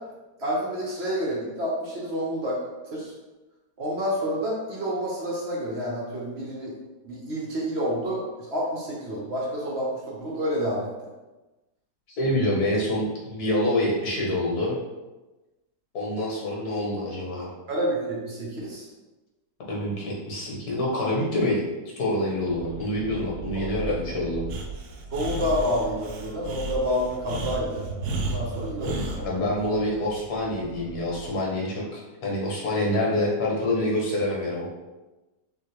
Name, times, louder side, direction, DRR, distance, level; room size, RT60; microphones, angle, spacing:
voice 1, 0.4-2.6 2.9-3.1 3.8-6.7 7.0-10.9 17.7-18.9 23.5-24.2 25.1-27.9 28.2-29.4, equal, 45° right, -4 dB, 1.2 m, -29 dB
voice 2, 12.2-14.8 15.9-17.5 19.7-21.6 22.0-24.4 29.2-34.7, left 1 dB, 65° left, -3 dB, 1.7 m, -26 dB
sound 1, 22.5-31.3, right 4 dB, 60° right, 0.8 m, -38 dB
Breathing, 24.5-29.2, equal, 85° right, 1.2 m, -33 dB
5.4 x 2.8 x 3.2 m, 1.1 s
omnidirectional pair, 1.8 m